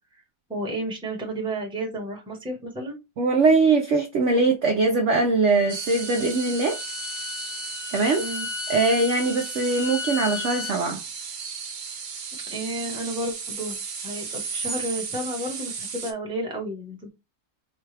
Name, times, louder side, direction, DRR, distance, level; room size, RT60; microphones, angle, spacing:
voice 1, 0.5-3.0 8.2-8.5 12.5-13.8 14.0-17.1, right 1 dB, 5° right, 0.9 m, -32 dB
voice 2, 3.2-6.8 7.9-8.2 8.7-11.0, right 3 dB, 60° right, 0.8 m, -21 dB
Bowed string instrument, 5.4-10.8, left 5 dB, 70° left, 0.9 m, -35 dB
sound 1, 5.7-16.1, right 5 dB, 80° right, 0.4 m, -35 dB
4.6 x 2.3 x 3.2 m
omnidirectional pair, 1.8 m